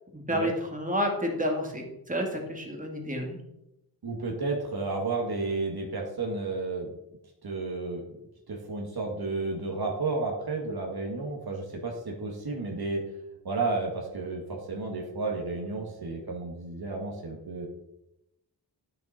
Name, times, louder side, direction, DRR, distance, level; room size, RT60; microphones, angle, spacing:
voice 1, 0.1-3.4, equal, 20° right, 1 dB, 2.2 m, -30 dB
voice 2, 4.0-7.0 7.4-8.0 8.5-13.0 13.4-17.7, right 3 dB, 60° right, 0 dB, 1.9 m, -32 dB
12.0 x 7.0 x 4.3 m, 0.86 s
wide cardioid pair, 145°, 43 cm